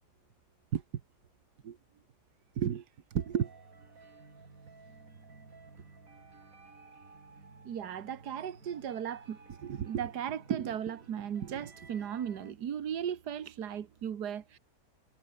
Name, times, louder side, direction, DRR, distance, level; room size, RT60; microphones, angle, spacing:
sound 1, 3.1-12.5, right 3 dB, 55° right, 3.5 m, -55 dB
voice 1, 3.1-3.8 7.7-14.6, right 9 dB, 80° right, 1.9 m, -35 dB
omnidirectional pair, 1.7 m